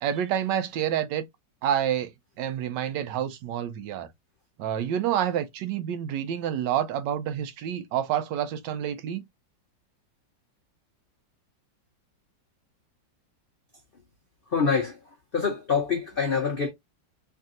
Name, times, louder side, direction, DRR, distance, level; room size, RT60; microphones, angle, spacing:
voice 1, 0.0-1.2 1.6-2.1 2.4-4.1 4.6-9.2, right 10 dB, 75° right, 1.2 m, -28 dB
voice 2, 14.5-14.9 15.3-16.7, left 5 dB, 85° left, 0.4 m, -25 dB
3.4 x 2.5 x 2.6 m
omnidirectional pair, 2.0 m